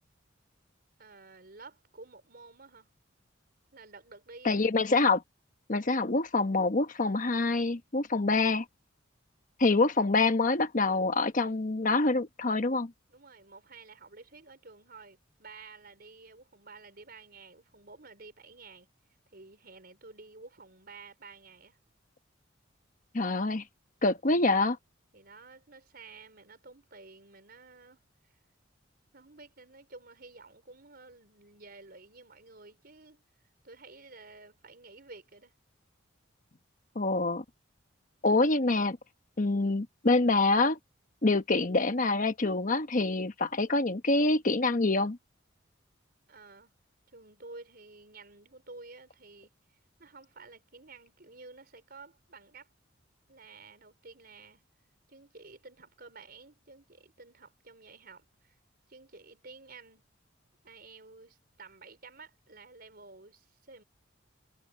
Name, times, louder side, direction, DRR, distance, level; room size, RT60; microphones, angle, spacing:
voice 1, 1.0-2.9 3.7-4.7 13.1-18.9 19.3-21.8 25.1-28.3 29.1-33.2 33.6-35.5 46.3-46.7 47.1-49.5 50.0-52.7 53.3-54.6 55.1-58.6 58.9-60.1 60.6-63.8, right 3 dB, 55° right, 4.7 m, -52 dB
voice 2, 4.4-5.2 5.7-8.6 9.6-12.9 23.1-23.6 24.0-24.8 36.9-37.4 38.2-39.0 39.4-40.8 41.2-45.2, left 3 dB, 45° left, 1.1 m, -26 dB
head